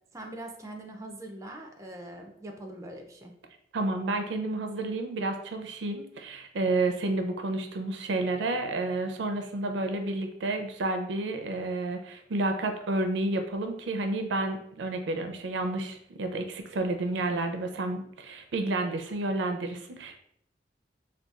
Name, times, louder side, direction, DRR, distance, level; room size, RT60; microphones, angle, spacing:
voice 1, 0.1-3.3, right 1 dB, 20° right, 2 dB, 0.4 m, -42 dB
voice 2, 3.7-20.2, right 2 dB, 90° right, 5 dB, 0.4 m, -30 dB
3.9 x 2.3 x 2.3 m, 0.72 s
head